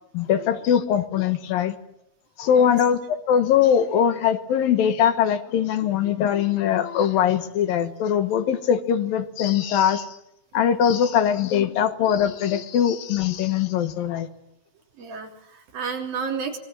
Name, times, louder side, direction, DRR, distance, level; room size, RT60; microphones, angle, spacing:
voice 1, 0.1-1.8 2.4-10.2 10.5-14.3, left 9 dB, 80° left, 10 dB, 3.2 m, -21 dB
voice 2, 15.0-16.6, right 6 dB, 80° right, 3 dB, 5.1 m, -31 dB
25.5 x 20.5 x 7.5 m, 0.80 s
omnidirectional pair, 4.1 m